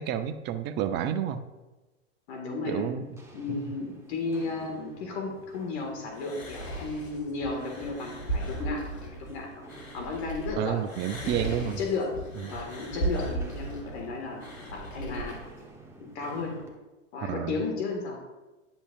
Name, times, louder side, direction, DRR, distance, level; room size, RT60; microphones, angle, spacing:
voice 1, 0.0-1.4 2.7-3.1 3.5-3.7 10.6-11.8 12.4-12.6 17.2-17.6, right 9 dB, 30° right, 11 dB, 0.5 m, -30 dB
voice 2, 2.3-2.8 3.3-10.8 11.2-15.4 16.0-16.6 17.1-18.2, left 3 dB, 60° left, 1 dB, 1.8 m, -34 dB
Walk footsteps, 3.0-16.8, right 2 dB, 5° right, 1.1 m, -51 dB
sound 1, 6.1-10.5 10.8-15.3, right 2 dB, 85° left, 2.1 m, -36 dB
9.7 x 7.2 x 2.4 m, 1.1 s
hypercardioid pair, 105°, 38 cm